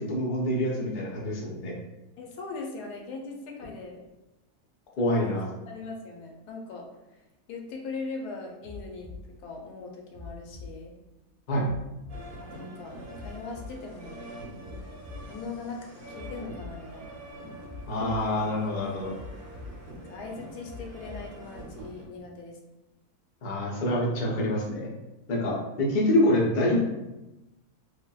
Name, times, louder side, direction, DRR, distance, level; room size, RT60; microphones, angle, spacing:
voice 1, 0.0-1.7 5.0-5.4 11.5-11.7 17.9-19.1 23.4-24.9 25.3-26.8, left 1 dB, 60° left, -4 dB, 0.5 m, -26 dB
voice 2, 2.2-4.1 5.0-5.4 5.7-11.0 12.4-14.3 15.2-17.2 19.9-22.6, left 3 dB, 80° left, 0 dB, 1.1 m, -40 dB
sound 1, 8.6-9.2 10.1-10.7 11.6-12.2 13.1-13.7 14.6-15.2 16.1-16.7 17.6-18.2 19.1-19.7 20.6-21.2 22.1-22.2, left 4 dB, 90° right, 0.4 m, -43 dB
sound 2, 12.1-22.0, right 1 dB, 50° right, 0.7 m, -44 dB
3.4 x 2.1 x 2.3 m, 0.98 s
omnidirectional pair, 1.7 m